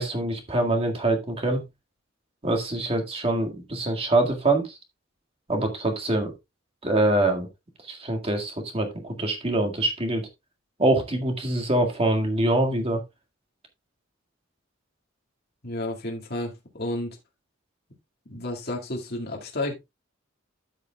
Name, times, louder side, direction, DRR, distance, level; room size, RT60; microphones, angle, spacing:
voice 1, 0.0-1.6 2.4-4.7 5.5-6.3 6.8-7.5 7.9-10.3 10.8-13.0, right 2 dB, 30° right, 1.9 m, -24 dB
voice 2, 15.6-17.2 18.3-19.7, left 1 dB, 50° left, 2.0 m, -31 dB
13.0 x 6.6 x 2.3 m
head